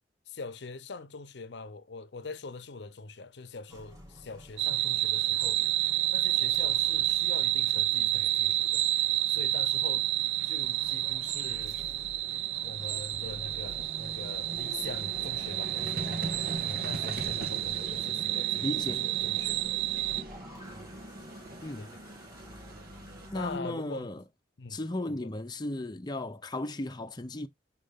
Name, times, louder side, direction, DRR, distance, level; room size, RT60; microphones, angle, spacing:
voice 1, 0.3-5.6 6.1-8.9 9.3-10.1 10.4-11.8 12.6-19.8 21.8-21.9 23.3-24.1 24.6-24.8 25.1-25.3, left 3 dB, 70° left, 0.7 m, -43 dB
sound 1, 3.7-15.5 16.8-23.6, equal, 20° right, 2.4 m, -52 dB
sound 2, 4.6-20.2, right 14 dB, 85° right, 0.4 m, -29 dB
Vehicle, 7.5-7.6 9.6-9.7 9.9-23.3, right 2 dB, 60° right, 1.8 m, -42 dB
voice 2, 18.6-19.1 21.6-21.9 23.3-24.2 24.7-27.5, left 1 dB, 25° left, 0.7 m, -35 dB
7.5 x 5.2 x 3.6 m
head